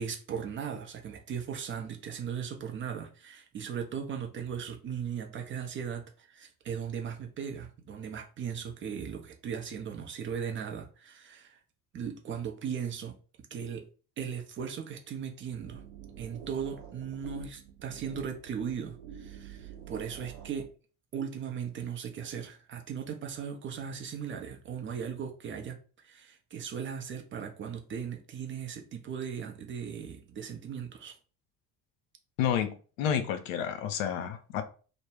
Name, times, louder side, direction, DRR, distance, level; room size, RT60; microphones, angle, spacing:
voice 1, 0.0-11.6 11.9-13.2 13.5-13.9 14.2-15.8 16.2-20.7 21.1-31.2, right 7 dB, 30° right, 0.5 m, -38 dB
sound 1, 15.6-20.7, right 9 dB, 75° right, 0.7 m, -47 dB
voice 2, 32.4-34.6, left 9 dB, 65° left, 0.5 m, -30 dB
2.2 x 2.0 x 3.2 m
figure-of-eight pair, 55°, 43 cm